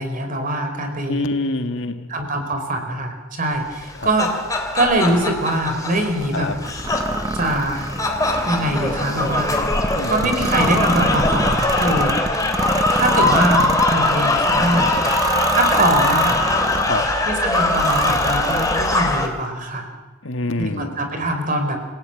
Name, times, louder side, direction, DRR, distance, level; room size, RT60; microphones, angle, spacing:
voice 1, 0.0-1.2 2.1-4.3 4.7-6.5 7.3-7.9 8.5-9.6 10.1-12.2 12.9-14.9 15.5-16.4 17.3-19.9 20.6-21.8, right 1 dB, 40° right, 6 dB, 4.7 m, -22 dB
voice 2, 1.1-2.1 4.0-4.1 6.3-6.6 10.0-10.4 16.8-17.1 20.2-21.0, left 2 dB, 60° left, 7 dB, 1.8 m, -26 dB
sound 1, 3.8-19.3, left 2 dB, 15° left, 3.2 m, -21 dB
sound 2, 6.7-17.0 17.5-19.2, right 3 dB, 15° right, 0.7 m, -27 dB
29.0 x 17.5 x 9.1 m, 1.2 s
head